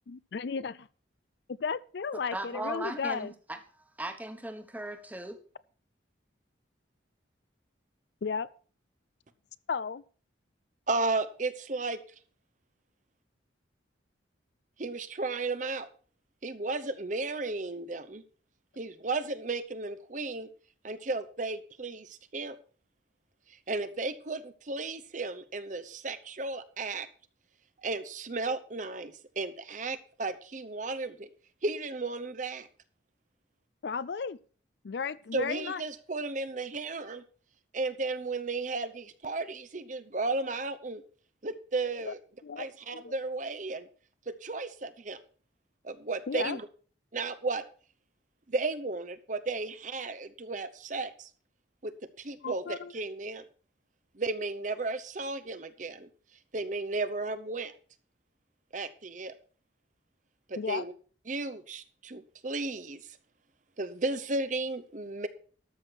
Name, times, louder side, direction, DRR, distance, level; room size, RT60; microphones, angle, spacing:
voice 1, 0.1-0.9 1.6-3.3 8.2-8.5 9.7-10.0 33.8-34.4 34.8-35.8 42.1-42.2 42.4-43.1 46.3-46.6 52.4-52.9 60.6-60.8, left 5 dB, 60° left, 0.4 m, -34 dB
voice 2, 2.3-5.4, right 1 dB, 10° right, 1.2 m, -38 dB
voice 3, 10.9-12.0 14.8-15.9 16.4-18.2 18.8-20.5 20.8-22.6 23.7-27.1 27.8-31.3 31.6-32.7 35.3-37.2 37.7-41.0 41.4-42.2 42.6-43.9 44.3-45.2 45.8-46.7 47.1-47.6 48.5-51.3 51.8-53.4 54.1-56.1 56.5-57.7 58.7-59.4 60.5-60.9 61.3-63.2 63.8-65.3, right 3 dB, 40° right, 0.8 m, -34 dB
13.0 x 6.3 x 6.1 m
head